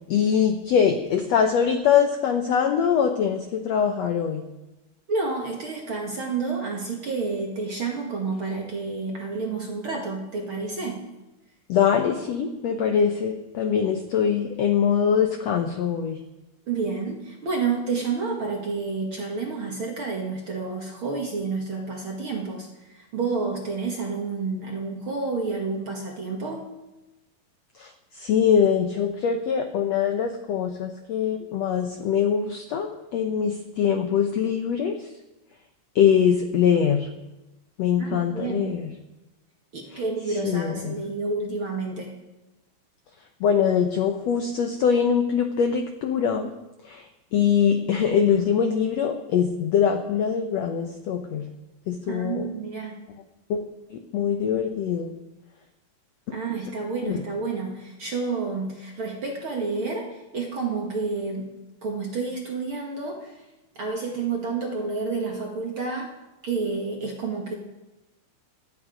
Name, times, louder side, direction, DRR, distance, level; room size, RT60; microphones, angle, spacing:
voice 1, 0.1-4.4 11.7-16.2 27.8-27.9 28.2-34.9 35.9-37.1 37.8-38.9 40.4-41.0 43.4-46.5 46.9-47.0 47.3-51.5 51.9-52.5 53.5-53.6 54.1-55.1 57.1-57.2, left 7 dB, 90° left, 5 dB, 1.4 m, -23 dB
voice 2, 5.1-11.0 16.7-26.7 38.0-38.8 39.7-42.1 52.1-53.0 56.3-60.1 60.3-61.5 61.8-63.3 63.8-66.1 66.4-67.5, right 4 dB, 50° right, 0 dB, 1.8 m, -29 dB
23.0 x 9.0 x 5.1 m, 1.0 s
omnidirectional pair, 4.3 m